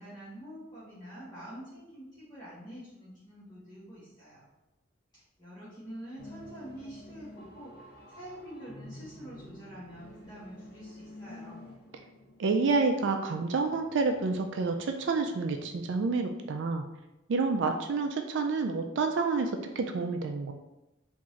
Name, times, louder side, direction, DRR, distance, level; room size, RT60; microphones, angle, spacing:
voice 1, 0.0-4.5 5.1-11.7, equal, 20° left, -12 dB, 1.2 m, -46 dB
sound 1, 6.2-16.1, left 1 dB, 50° left, 0.8 m, -51 dB
voice 2, 12.4-16.8 17.3-19.5 19.8-20.5, right 4 dB, 70° right, 5 dB, 0.4 m, -28 dB
3.6 x 2.6 x 3.1 m, 0.91 s
head